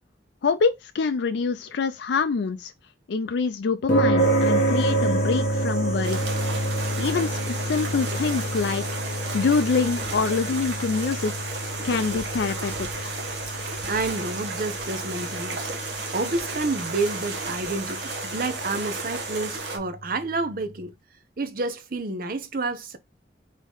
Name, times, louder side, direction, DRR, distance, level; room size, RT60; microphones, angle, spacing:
voice 1, 0.4-2.7 3.1-6.2 7.0-8.8 9.3-11.3 11.8-13.1, left 4 dB, 75° left, 0.4 m, -25 dB
sound 1, 3.9-20.4, right 1 dB, 50° left, 1.3 m, -29 dB
sound 2, 4.2-19.6, equal, 5° right, 1.5 m, -42 dB
sound 3, 6.0-19.8, right 3 dB, 75° right, 1.2 m, -34 dB
voice 2, 13.9-15.6 16.1-20.9 21.4-23.0, right 3 dB, 50° right, 0.7 m, -29 dB
3.6 x 3.6 x 3.7 m
head